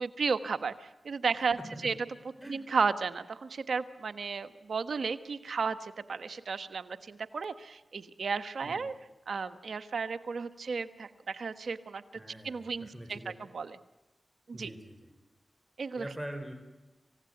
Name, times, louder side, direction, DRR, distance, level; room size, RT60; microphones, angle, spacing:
voice 1, 0.0-1.6 1.8-1.9 2.5-8.9 9.3-12.0 12.4-13.8 14.5-14.7 15.8-16.1, right 5 dB, 75° right, 11 dB, 1.4 m, -33 dB
voice 2, 1.6-1.9 2.4-2.6 8.6-8.8 12.2-13.4 14.5-15.1 16.0-16.5, right 1 dB, 10° right, 6 dB, 5.4 m, -43 dB
27.5 x 16.5 x 9.5 m, 1.1 s
cardioid pair, 40°, 0 cm